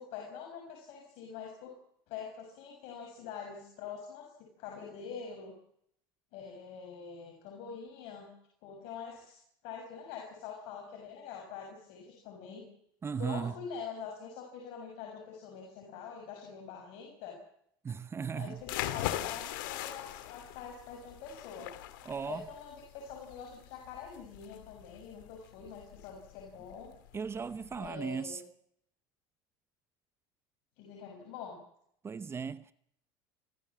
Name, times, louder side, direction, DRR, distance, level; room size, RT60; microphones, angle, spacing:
voice 1, 0.0-1.7 2.1-5.5 6.3-8.3 8.6-12.6 13.2-17.4 18.3-21.7 22.2-26.9 27.7-28.4 30.8-31.6, left 6 dB, 65° left, 6.4 m, -45 dB
voice 2, 13.0-13.5 17.8-18.6 22.0-22.5 27.1-28.4 32.0-32.7, right 6 dB, 25° right, 0.8 m, -36 dB
sound 1, 18.6-27.9, left 14 dB, 85° left, 2.2 m, -41 dB
26.0 x 15.5 x 7.4 m
supercardioid pair, 115°, 11 cm